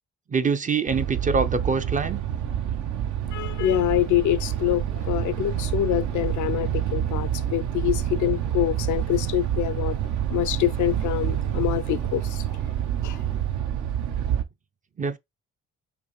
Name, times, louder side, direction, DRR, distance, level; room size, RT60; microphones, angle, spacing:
voice 1, 0.3-2.2 15.0-15.2, right 5 dB, 25° right, 0.4 m, -24 dB
sound 1, 0.9-14.4, right 10 dB, 75° right, 0.7 m, -27 dB
voice 2, 3.3-10.0 10.3-12.4 13.0-13.2, left 13 dB, 75° left, 0.5 m, -25 dB
5.3 x 2.2 x 3.1 m
cardioid pair, 90°, 30 cm